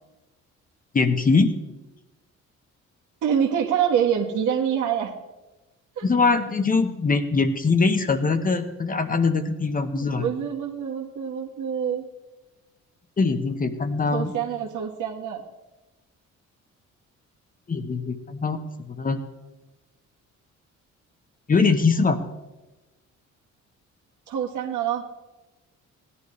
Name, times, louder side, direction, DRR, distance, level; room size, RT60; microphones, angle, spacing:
voice 1, 0.9-1.6 6.0-10.3 13.2-14.3 17.7-19.2 21.5-22.2, left 4 dB, 30° left, 8 dB, 0.9 m, -22 dB
voice 2, 3.2-5.1 6.0-6.1 9.9-12.1 14.1-15.4 24.3-25.1, right 8 dB, 80° right, 1 dB, 1.6 m, -26 dB
16.0 x 11.0 x 3.2 m, 1.1 s
cardioid pair, 90°, 30 cm